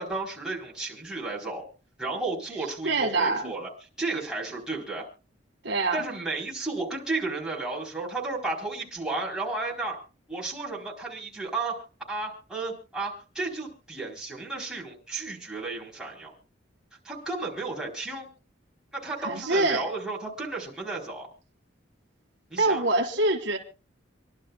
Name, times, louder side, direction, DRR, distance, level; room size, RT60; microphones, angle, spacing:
voice 1, 0.0-1.6 2.0-3.7 4.0-5.1 5.9-10.0 10.3-16.3 17.0-18.2 18.9-21.3 22.5-22.8, right 3 dB, ahead, 4.6 m, -33 dB
voice 2, 2.8-3.5 5.6-6.0 19.2-19.9 22.6-23.6, right 2 dB, 60° right, 1.8 m, -25 dB
27.5 x 11.5 x 2.2 m
head